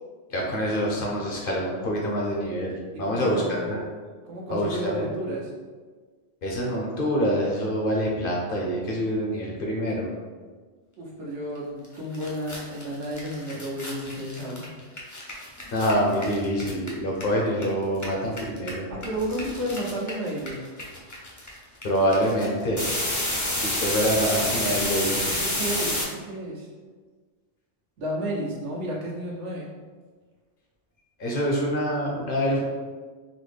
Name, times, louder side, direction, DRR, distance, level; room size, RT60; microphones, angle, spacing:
voice 1, 0.3-3.8 4.5-5.1 6.4-10.1 15.7-18.9 21.8-22.8 23.5-25.3 31.2-32.6, equal, 55° left, -2 dB, 0.7 m, -26 dB
voice 2, 2.9-3.7 4.3-5.5 11.0-14.7 18.9-20.6 25.3-26.7 28.0-29.7, equal, 75° right, -4 dB, 1.1 m, -32 dB
sound 1, 11.8-11.9 12.1-17.6 17.9-26.0, left 1 dB, 25° left, 0.4 m, -30 dB
4.0 x 2.0 x 3.2 m, 1.5 s
omnidirectional pair, 1.2 m